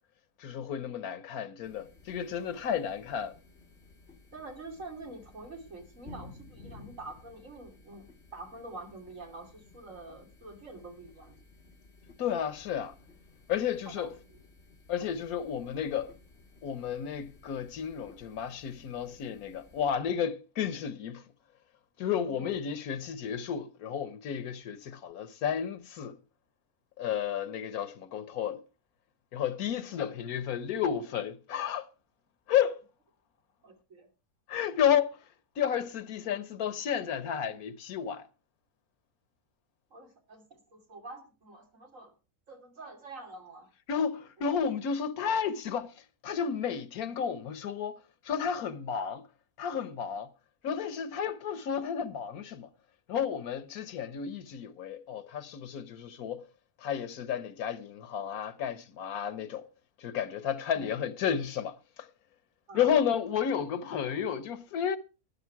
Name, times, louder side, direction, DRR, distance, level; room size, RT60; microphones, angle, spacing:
voice 1, 0.4-3.3 12.2-12.9 13.5-14.1 14.9-16.1 16.6-21.2 22.0-26.2 27.0-28.6 29.3-31.9 32.5-32.8 34.5-35.2 35.6-38.3 43.9-45.9 46.2-48.0 48.2-49.2 49.6-50.3 50.6-52.7 53.1-56.4 56.8-59.7 60.0-62.1 62.7-65.0, left 8 dB, 85° left, 1.4 m, -32 dB
sound 1, 1.6-20.0, left 3 dB, 45° left, 2.6 m, -55 dB
voice 2, 4.3-8.1 8.3-11.4 13.9-14.4 22.2-22.6 29.8-30.0 33.6-34.1 39.9-42.1 42.5-43.7 44.4-44.5 60.7-60.9 62.7-62.9, right 2 dB, 60° right, 3.2 m, -46 dB
12.5 x 10.5 x 4.6 m
omnidirectional pair, 1.5 m